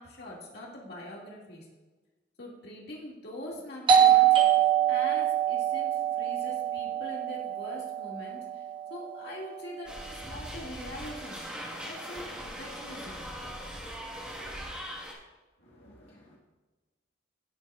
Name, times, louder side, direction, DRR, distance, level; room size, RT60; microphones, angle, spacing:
voice 1, 0.0-1.7 2.4-11.5 11.8-13.3, left 1 dB, 55° left, -3 dB, 2.2 m, -43 dB
Doorbell, 3.9-9.3, right 10 dB, 25° right, 1.0 m, -24 dB
sound 1, 9.9-15.1, equal, 5° right, 1.5 m, -40 dB
voice 2, 15.6-16.4, equal, 80° left, -4 dB, 1.6 m, -56 dB
16.0 x 7.4 x 2.4 m, 1.2 s
head